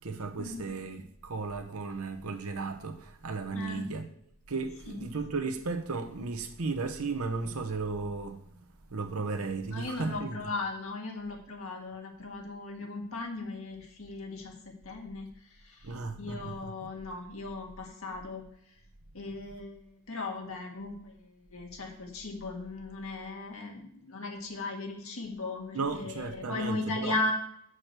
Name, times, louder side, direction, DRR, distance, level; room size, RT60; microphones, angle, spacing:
voice 1, 0.0-4.1 4.5-10.4 15.8-16.7 25.7-27.1, right 4 dB, 80° right, 0.9 m, -35 dB
voice 2, 3.5-3.9 4.9-5.1 9.7-15.9 16.2-18.4 19.1-27.3, left 3 dB, 70° left, 1.7 m, -37 dB
6.6 x 6.3 x 4.5 m
head